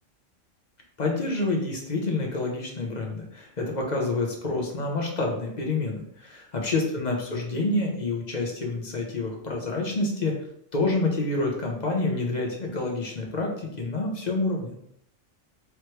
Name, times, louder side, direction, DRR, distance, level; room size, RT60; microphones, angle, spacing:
voice 1, 1.0-10.3 10.7-14.7, left 2 dB, 40° left, 0 dB, 0.9 m, -28 dB
4.6 x 3.2 x 3.1 m, 0.71 s
omnidirectional pair, 1.3 m